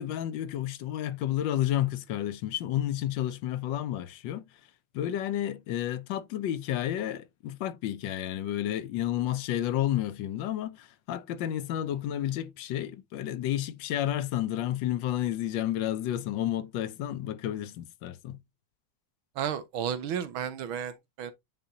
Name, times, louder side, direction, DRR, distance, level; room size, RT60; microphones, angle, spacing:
voice 1, 0.0-4.4 4.9-18.4, left 12 dB, 75° left, 1.3 m, -31 dB
voice 2, 19.4-21.3, right 8 dB, 90° right, 1.7 m, -33 dB
9.1 x 4.2 x 2.7 m
omnidirectional pair, 2.2 m